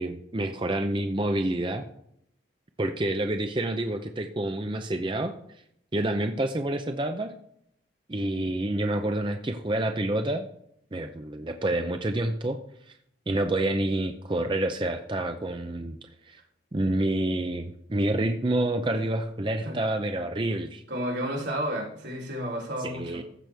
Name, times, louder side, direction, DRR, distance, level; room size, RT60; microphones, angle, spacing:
voice 1, 0.0-1.8 2.8-5.3 5.9-7.3 8.1-10.4 10.9-12.6 12.9-13.0 13.3-16.0 16.3-16.4 16.7-20.8 22.8-23.2, right 1 dB, 25° right, 6 dB, 0.6 m, -28 dB
voice 2, 20.9-23.2, equal, 80° right, -2 dB, 3.4 m, -31 dB
15.0 x 6.1 x 3.4 m, 0.72 s
head